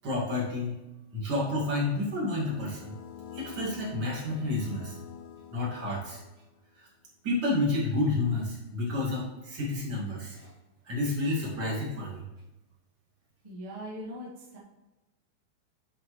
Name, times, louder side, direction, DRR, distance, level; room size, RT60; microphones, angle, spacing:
voice 1, 0.0-0.7 1.1-3.0 3.3-5.0 5.5-6.2 6.8-6.9 7.2-10.5 10.8-12.2, left 2 dB, 35° right, -5 dB, 2.2 m, -30 dB
sound 1, 1.9-6.6, left 8 dB, 80° left, 2.0 m, -47 dB
voice 2, 13.4-14.6, equal, 85° right, -6 dB, 0.3 m, -40 dB
11.5 x 5.0 x 3.2 m, 1.0 s
omnidirectional pair, 4.5 m